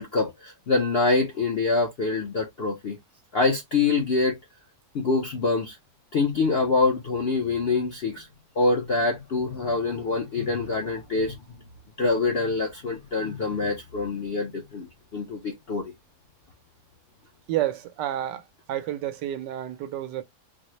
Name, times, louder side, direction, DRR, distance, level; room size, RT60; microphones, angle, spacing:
voice 1, 0.0-3.0 3.3-4.4 4.9-5.8 6.1-8.3 8.6-11.4 12.0-15.9, left 3 dB, 60° left, 0.6 m, -25 dB
voice 2, 17.5-18.4 18.7-20.2, right 12 dB, 85° right, 1.2 m, -29 dB
4.1 x 2.0 x 3.0 m
omnidirectional pair, 1.8 m